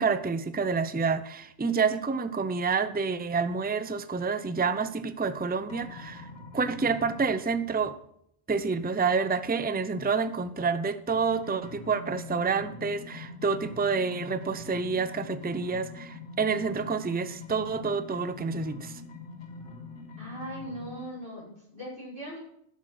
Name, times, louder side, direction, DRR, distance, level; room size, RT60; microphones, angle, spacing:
voice 1, 0.0-6.3 6.5-8.0 8.5-19.0, right 5 dB, 15° right, 11 dB, 0.4 m, -28 dB
sound 1, 5.7-7.5 11.1-21.1, left 3 dB, 85° left, 1.6 m, -44 dB
voice 2, 20.2-22.4, equal, 60° right, -5 dB, 5.9 m, -39 dB
11.5 x 6.8 x 6.0 m, 0.72 s
omnidirectional pair, 1.2 m